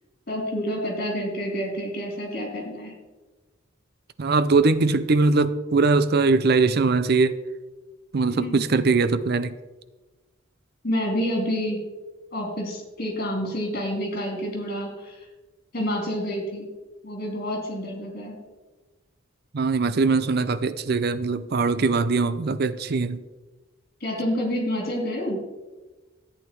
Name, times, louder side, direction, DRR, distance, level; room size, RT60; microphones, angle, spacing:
voice 1, 0.3-2.9 8.3-8.6 10.8-11.8 12.3-15.3 15.7-16.7 17.0-18.4 24.0-25.4, equal, 50° left, 1 dB, 3.4 m, -28 dB
voice 2, 4.2-7.4 8.1-9.5 19.5-23.2, right 3 dB, 50° right, 14 dB, 0.5 m, -21 dB
14.0 x 8.8 x 4.6 m, 1.2 s
head